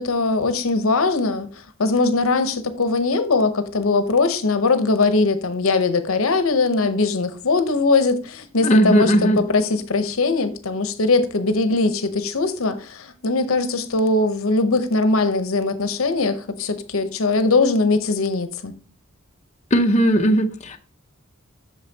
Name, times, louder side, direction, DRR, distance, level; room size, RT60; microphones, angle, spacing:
voice 1, 0.0-1.5 1.8-18.7, left 3 dB, 70° left, 0.8 m, -20 dB
voice 2, 8.6-9.4 19.7-20.8, right 1 dB, 35° left, 0.6 m, -17 dB
8.7 x 6.5 x 2.8 m
head